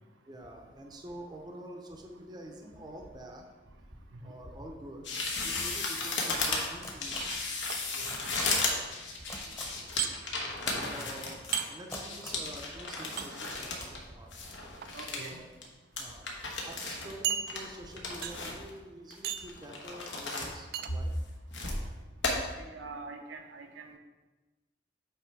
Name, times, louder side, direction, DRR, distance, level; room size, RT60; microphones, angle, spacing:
voice 1, 0.2-3.7 4.2-5.1 5.4-7.3 9.2-9.6 10.7-11.4 11.7-14.4 15.0-15.5 16.0-16.3 16.7-21.1, right 1 dB, 20° right, 2 dB, 0.6 m, -47 dB
sound 1, 5.0-14.0 14.3-15.3 15.6-15.7 16.0-17.1 17.5-18.7 19.1-20.5 20.9-21.8 22.2-22.3, left 3 dB, 75° left, 1.1 m, -34 dB
sound 2, 6.8-7.2 8.1-8.4 9.3-9.6 10.7-11.1 11.9-12.4 13.1-13.2 13.7-13.9, left 1 dB, 15° left, 1.0 m, -42 dB
sound 3, 7.2-7.8 10.0-10.1 11.5-11.7 13.2-13.3 14.6-14.9 15.6-15.7 16.1-16.2 17.2-17.9 18.2-18.6 19.2-19.6 20.7-20.9, right 9 dB, 55° right, 0.3 m, -34 dB
voice 2, 14.9-15.4 22.5-24.0, right 3 dB, 80° right, 4 dB, 0.7 m, -45 dB
8.2 x 3.2 x 4.6 m, 1.2 s
head